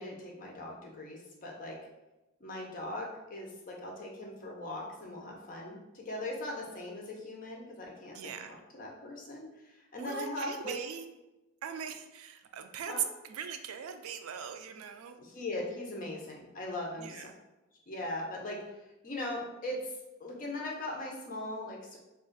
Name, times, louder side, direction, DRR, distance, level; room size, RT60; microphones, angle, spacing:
voice 1, 0.0-1.8 2.4-8.2 8.5-9.5 9.9-10.8 12.9-13.0 15.2-17.3 17.9-18.6 19.0-19.9 20.2-22.0, left 1 dB, 40° left, -1 dB, 0.6 m, -39 dB
voice 2, 8.1-8.5 10.0-11.1 11.6-15.2 17.0-17.3, right 8 dB, 85° right, 7 dB, 0.3 m, -40 dB
2.4 x 2.4 x 3.8 m, 1.0 s
head